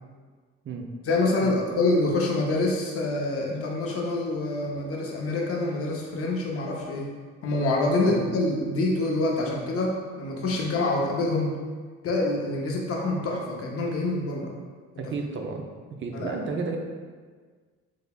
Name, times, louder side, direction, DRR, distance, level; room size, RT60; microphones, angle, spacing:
voice 1, 1.1-7.1 7.4-11.5 12.0-14.5 16.1-16.3, left 2 dB, 50° left, -1 dB, 0.7 m, -26 dB
voice 2, 15.0-15.7 16.0-16.8, right 4 dB, 40° right, 3 dB, 0.5 m, -32 dB
3.7 x 3.3 x 2.3 m, 1.5 s
cardioid pair, 90°, 30 cm